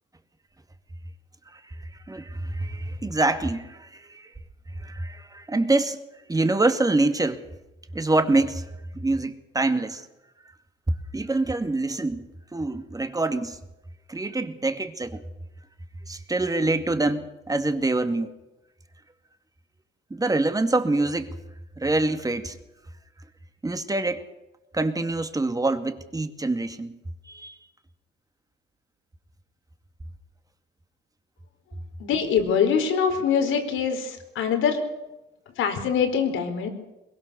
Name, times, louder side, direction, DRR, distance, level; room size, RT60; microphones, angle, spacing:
voice 1, 2.1-4.3 4.8-6.0 6.3-7.4 7.9-8.6 8.9-10.1 11.1-13.6 14.1-15.2 16.1-18.3 20.1-21.4 21.8-22.6 23.6-24.2 24.7-27.0 27.2-27.6, right 2 dB, 20° right, 8 dB, 2.3 m, -25 dB
voice 2, 32.0-34.8 35.6-36.7, left 7 dB, 85° left, 6 dB, 4.4 m, -23 dB
22.5 x 22.0 x 7.0 m, 0.97 s
cardioid pair, 90°, 20 cm